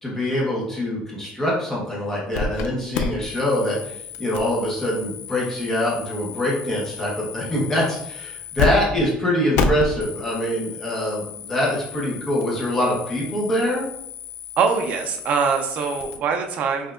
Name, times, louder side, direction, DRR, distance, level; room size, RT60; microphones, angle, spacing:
voice 1, 0.0-13.9, left 1 dB, 10° left, -4 dB, 1.0 m, -24 dB
sound 1, 2.3-2.7 2.9-8.7 8.9-9.0 9.5-16.2, left 5 dB, 90° left, 0.4 m, -32 dB
voice 2, 14.6-16.9, right 5 dB, 40° right, 4 dB, 0.4 m, -23 dB
5.5 x 2.7 x 2.4 m, 0.76 s
cardioid pair, 175°, 4 cm